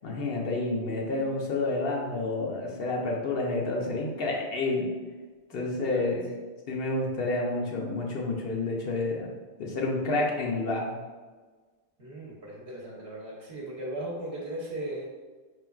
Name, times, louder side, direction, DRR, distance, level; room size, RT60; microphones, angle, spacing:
voice 1, 0.0-4.9 5.5-6.3 6.7-9.3 9.6-11.0, left 2 dB, 60° left, -1 dB, 0.9 m, -29 dB
voice 2, 5.5-6.2 12.0-15.1, right 1 dB, 65° right, -4 dB, 1.0 m, -37 dB
5.0 x 3.1 x 2.3 m, 1.4 s
omnidirectional pair, 1.1 m